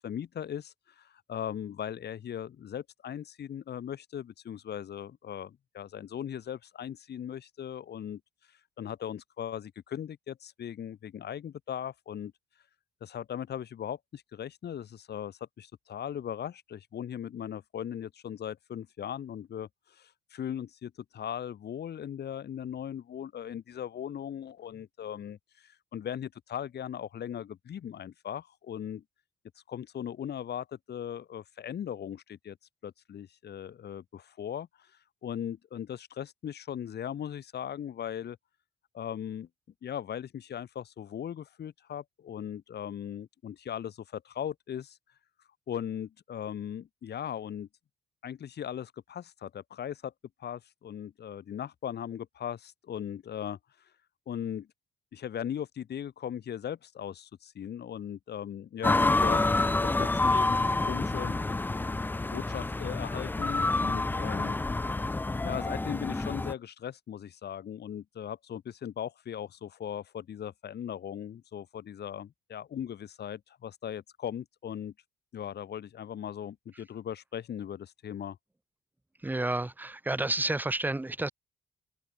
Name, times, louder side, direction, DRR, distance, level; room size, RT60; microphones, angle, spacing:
voice 1, 0.0-8.2 8.5-12.3 13.0-29.0 29.7-32.6 32.8-34.9 35.2-38.4 38.9-39.5 39.8-45.0 45.7-47.7 48.2-50.1 50.4-53.6 54.3-54.7 55.1-59.7 59.9-61.4 62.3-64.6 65.4-74.9 75.3-78.4, left 9 dB, 55° left, 1.8 m, -38 dB
sound 1, 58.8-66.5, left 2 dB, 10° left, 0.4 m, -28 dB
voice 2, 79.2-81.3, right 2 dB, 10° right, 0.9 m, -30 dB
cardioid pair, 90°, 20 cm